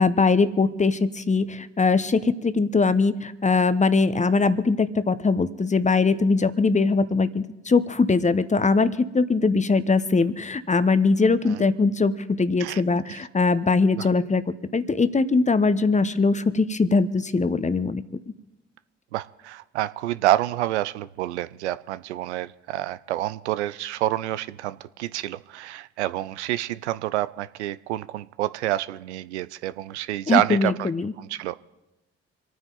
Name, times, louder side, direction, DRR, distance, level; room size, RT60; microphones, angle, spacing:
voice 1, 0.0-14.4 14.7-18.0 30.3-31.1, left 4 dB, 20° left, 15 dB, 1.0 m, -21 dB
voice 2, 19.1-30.9 31.2-31.6, right 14 dB, 80° right, 15 dB, 0.5 m, -28 dB
27.5 x 9.4 x 4.0 m, 1.0 s
figure-of-eight pair, 45°, 34 cm